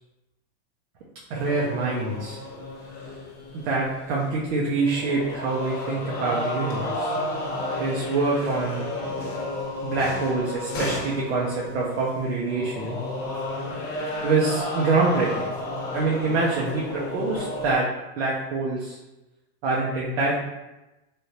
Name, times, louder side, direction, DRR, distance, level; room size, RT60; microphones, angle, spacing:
voice 1, 1.3-2.4 3.5-7.2 7.8-8.9 9.8-13.0 14.2-15.5 15.9-17.9 18.2-19.0 19.6-20.3, right 3 dB, 80° right, -4 dB, 0.7 m, -25 dB
sound 1, 1.4-4.5 4.7-17.7, left 2 dB, 30° left, 0.8 m, -32 dB
3.4 x 2.6 x 2.8 m, 1.0 s
supercardioid pair, 155°, 32 cm